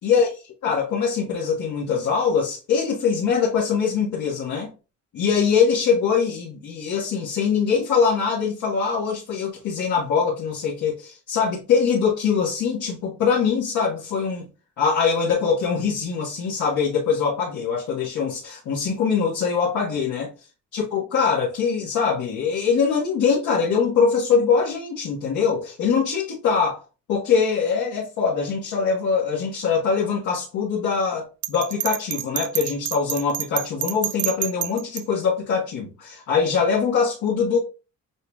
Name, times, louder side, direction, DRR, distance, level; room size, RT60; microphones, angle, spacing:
voice 1, 0.6-4.7 5.1-14.4 14.8-20.3 20.7-26.8 27.1-37.6, left 6 dB, 75° left, 1.5 m, -23 dB
Bell, 31.4-35.0, right 14 dB, 75° right, 0.5 m, -28 dB
7.0 x 2.8 x 2.3 m
cardioid pair, 90°, 30 cm